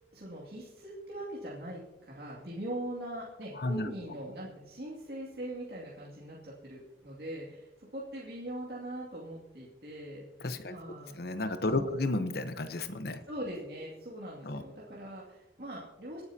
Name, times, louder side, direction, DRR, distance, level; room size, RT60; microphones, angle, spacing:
voice 1, 0.1-10.3 10.7-11.2 11.7-12.0 13.3-16.2, right 1 dB, 60° right, -6 dB, 2.4 m, -41 dB
voice 2, 3.6-3.9 10.4-10.7 11.2-13.2 14.4-14.6, left 2 dB, 60° left, 9 dB, 0.9 m, -32 dB
26.5 x 9.6 x 2.8 m, 1.1 s
head